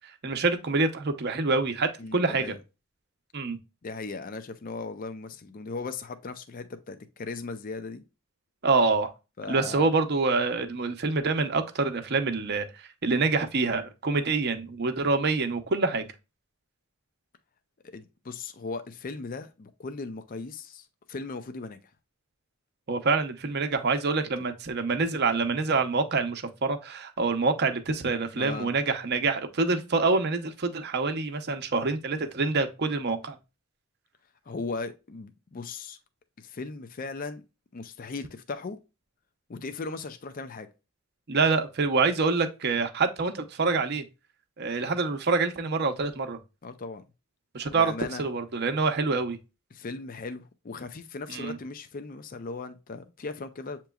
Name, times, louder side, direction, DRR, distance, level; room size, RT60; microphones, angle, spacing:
voice 1, 0.2-2.5 3.3-3.6 8.6-9.1 9.5-16.1 22.9-33.4 41.3-44.0 44.6-46.4 47.5-47.9 48.2-49.4 51.3-51.6, right 4 dB, 50° right, 0.7 m, -26 dB
voice 2, 2.0-2.6 3.8-8.0 9.4-9.9 17.9-21.8 28.3-28.7 34.5-36.0 36.4-37.4 37.7-38.8 39.5-40.7 46.6-47.0 47.7-48.2 49.7-53.8, left 3 dB, 40° left, 0.5 m, -37 dB
7.8 x 3.0 x 2.3 m
head